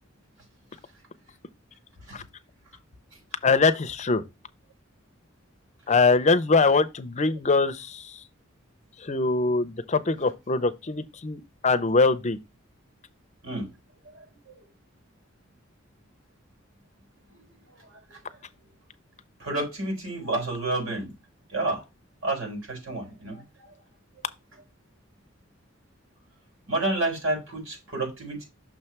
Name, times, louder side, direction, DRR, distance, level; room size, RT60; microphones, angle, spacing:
voice 1, 3.4-4.2 5.9-8.1 9.0-12.4, left 3 dB, 35° left, 0.6 m, -23 dB
voice 2, 14.1-14.6 17.9-18.2 19.4-21.1 21.5-21.8 22.2-23.4 26.7-28.4, right 2 dB, 90° right, 4.1 m, -30 dB
6.2 x 3.2 x 5.9 m
head